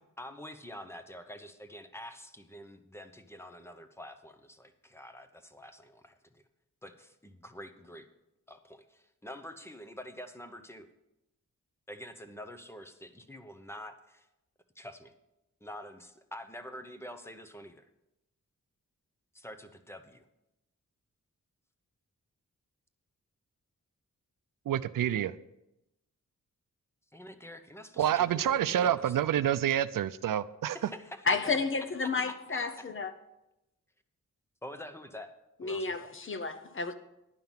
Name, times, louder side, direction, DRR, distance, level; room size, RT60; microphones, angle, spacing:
voice 1, 0.2-6.4 6.8-8.1 8.5-10.9 11.9-14.3 14.7-15.1 15.6-17.9 19.3-20.2 27.1-29.1 30.7-31.2 32.3-32.8 34.6-35.3 35.6-36.1, equal, 10° left, 8 dB, 0.8 m, -47 dB
voice 2, 24.7-25.3 28.0-30.8, right 10 dB, 80° right, 15 dB, 0.5 m, -28 dB
voice 3, 31.3-33.1 35.6-36.9, left 4 dB, 40° left, 10 dB, 0.8 m, -31 dB
11.0 x 5.7 x 7.2 m, 0.91 s
wide cardioid pair, 140°, 32 cm